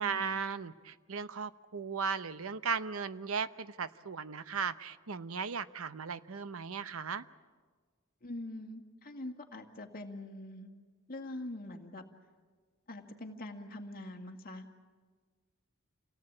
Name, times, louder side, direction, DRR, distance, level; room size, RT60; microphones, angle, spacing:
voice 1, 0.0-7.2, right 5 dB, 85° right, 14 dB, 0.8 m, -36 dB
voice 2, 8.2-10.7 11.1-12.0 12.9-14.7, left 1 dB, 45° left, 3 dB, 1.9 m, -43 dB
28.0 x 18.0 x 8.7 m, 1.5 s
head